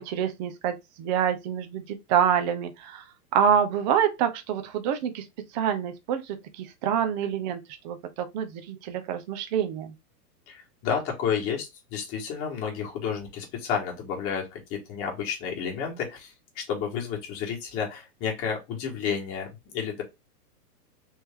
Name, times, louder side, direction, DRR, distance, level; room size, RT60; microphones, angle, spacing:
voice 1, 0.0-3.0 3.3-5.2 5.5-9.9, right 8 dB, 30° right, 0.5 m, -27 dB
voice 2, 10.5-20.0, left 7 dB, 30° left, 1.5 m, -31 dB
3.5 x 2.7 x 3.5 m
hypercardioid pair, 140°, 48 cm